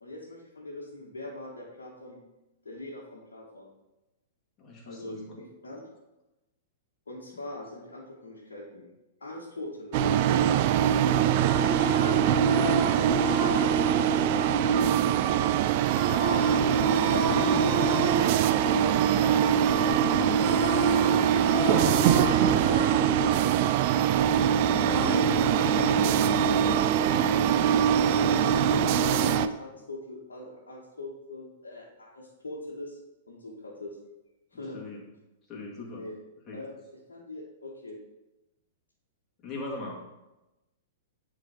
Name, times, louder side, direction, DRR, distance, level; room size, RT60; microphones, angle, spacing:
voice 1, 0.0-2.2 2.6-3.7 4.8-5.8 7.1-8.9 9.2-10.2 11.6-12.3 13.4-14.4 15.0-15.7 21.9-22.3 27.3-33.0 33.3-34.0 34.5-34.8 35.9-36.2 36.5-38.0, left 2 dB, 75° left, -5 dB, 1.3 m, -42 dB
voice 2, 4.6-5.4 10.6-11.1 13.1-13.5 14.8-15.2 17.1-20.6 21.5-22.1 24.7-26.1 34.7-35.0 35.5-36.0 36.5-36.6 39.4-40.2, left 2 dB, 25° left, -3 dB, 2.1 m, -39 dB
sound 1, 9.9-29.5, right 8 dB, 45° right, 0.3 m, -23 dB
sound 2, 11.3-15.3 15.8-19.9 20.2-24.4 24.9-26.4, right 2 dB, 10° right, 1.4 m, -33 dB
9.8 x 3.9 x 3.5 m, 0.99 s
figure-of-eight pair, 105°, 0 cm